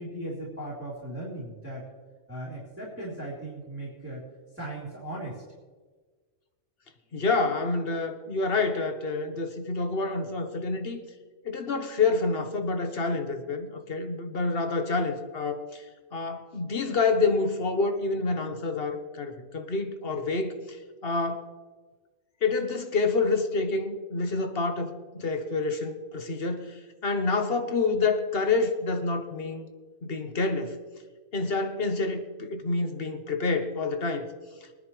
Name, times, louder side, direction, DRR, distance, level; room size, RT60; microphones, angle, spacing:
voice 1, 0.0-1.8 2.3-4.3 4.5-5.4, right 1 dB, 10° right, -10 dB, 3.7 m, -37 dB
voice 2, 7.1-11.0 11.4-15.8 16.1-21.5 22.4-29.6 30.0-30.8 31.3-34.3, left 3 dB, 50° left, 6 dB, 1.4 m, -28 dB
23.5 x 10.0 x 3.3 m, 1.4 s
omnidirectional pair, 1.3 m